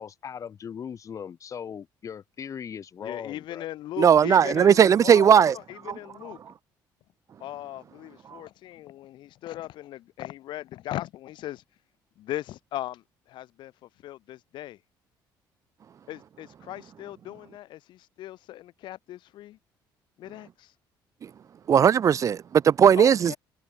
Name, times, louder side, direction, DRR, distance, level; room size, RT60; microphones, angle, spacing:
voice 1, 0.0-3.7, left 7 dB, 40° left, 2.3 m, -38 dB
voice 2, 3.0-5.5 5.8-6.4 7.4-11.6 12.2-13.0 13.3-13.7 14.0-14.8 16.1-19.6 20.2-20.5 23.0-23.4, left 14 dB, 70° left, 1.5 m, -38 dB
voice 3, 4.0-5.6 5.9-6.0 6.2-6.3 21.7-23.4, right 8 dB, 40° right, 0.7 m, -18 dB
cardioid pair, 125°, 8 cm